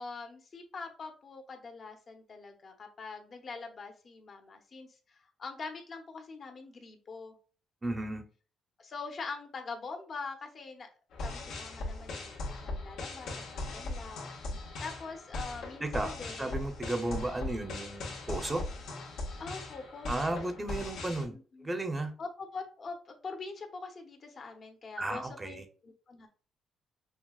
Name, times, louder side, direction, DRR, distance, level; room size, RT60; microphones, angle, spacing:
voice 1, 0.0-7.4 8.8-10.9 11.2-14.3 14.8-16.7 19.4-20.5 21.3-21.7 22.2-26.3, left 4 dB, 45° left, 4 dB, 0.8 m, -44 dB
voice 2, 7.8-8.2 15.8-16.1 16.4-18.6 20.1-21.3 21.6-22.1 25.0-25.6, right 2 dB, 20° right, 6 dB, 0.7 m, -34 dB
sound 1, 11.1-21.2, left 2 dB, 80° left, 1.4 m, -39 dB
6.0 x 2.2 x 2.3 m, 0.39 s
cardioid pair, 110°, 0 cm